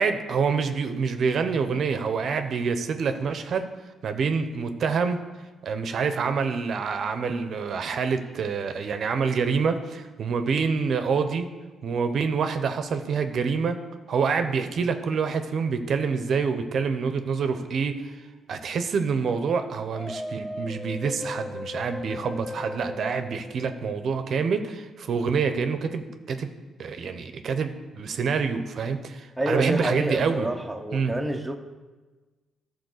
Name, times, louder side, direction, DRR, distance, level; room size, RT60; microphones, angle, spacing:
voice 1, 0.0-3.7 4.0-5.2 5.6-11.5 11.8-13.8 14.1-18.2 18.5-26.5 26.8-30.5 30.9-31.2, right 5 dB, 60° right, 8 dB, 0.7 m, -26 dB
sound 1, 19.9-24.2, left 1 dB, 10° left, 0.4 m, -37 dB
voice 2, 29.4-31.6, right 1 dB, 5° right, 4 dB, 0.8 m, -28 dB
12.0 x 4.2 x 6.5 m, 1.3 s
cardioid pair, 90°, 0 cm